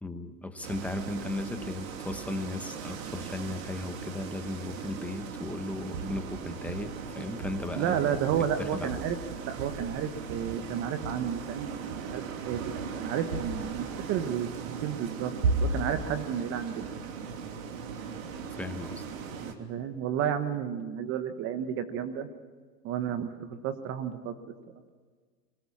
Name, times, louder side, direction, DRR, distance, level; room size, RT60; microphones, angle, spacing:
voice 1, 0.0-9.0 18.6-19.0, left 2 dB, 5° left, 7 dB, 1.1 m, -36 dB
sound 1, 0.6-19.5, right 6 dB, 60° right, 2.9 m, -39 dB
sound 2, 5.9-6.3 6.7-7.0 7.4-7.7 8.1-8.6 8.9-9.2 9.6-10.0 10.3-10.7 11.0-11.3 11.8-12.1 12.5-12.9 13.3-13.7 15.4-16.0, right 3 dB, 85° right, 5.3 m, -33 dB
voice 2, 7.8-9.2 9.4-11.8 12.1-15.3 15.6-16.9 19.4-22.3 22.8-23.3 23.6-24.3, right 9 dB, 30° right, 9 dB, 1.2 m, -31 dB
23.0 x 18.5 x 7.2 m, 1.5 s
hypercardioid pair, 140°, 47 cm